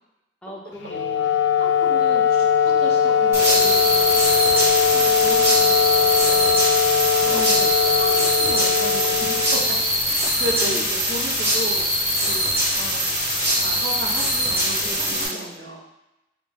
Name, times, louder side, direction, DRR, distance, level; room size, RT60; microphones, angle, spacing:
voice 1, 0.4-1.3 7.1-7.7 10.2-10.3 10.6-10.8 14.8-15.6, left 1 dB, 5° left, -1 dB, 0.4 m, -37 dB
Wind instrument woodwind instrument, 0.8-10.1, left 7 dB, 70° left, 0.3 m, -20 dB
voice 2, 1.2-6.6 7.3-9.4 10.1-11.8 12.2-12.5 12.7-13.1 13.6-15.8, right 1 dB, 60° right, -3 dB, 0.8 m, -35 dB
sound 1, 3.3-15.3, equal, 15° right, 0.9 m, -22 dB
4.1 x 2.1 x 3.3 m, 0.93 s
head